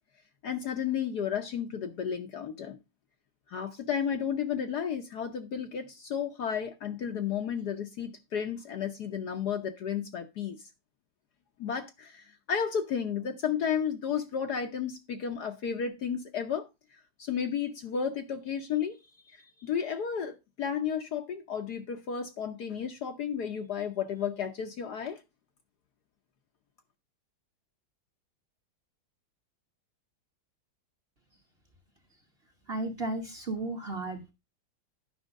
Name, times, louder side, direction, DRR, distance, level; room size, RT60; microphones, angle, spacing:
voice 1, 0.4-2.8 3.5-10.6 11.6-16.7 17.2-19.0 19.3-25.2, left 7 dB, 60° left, 1.2 m, -33 dB
voice 2, 32.7-34.3, right 2 dB, 35° right, 1.2 m, -34 dB
9.9 x 5.7 x 5.2 m
omnidirectional pair, 2.3 m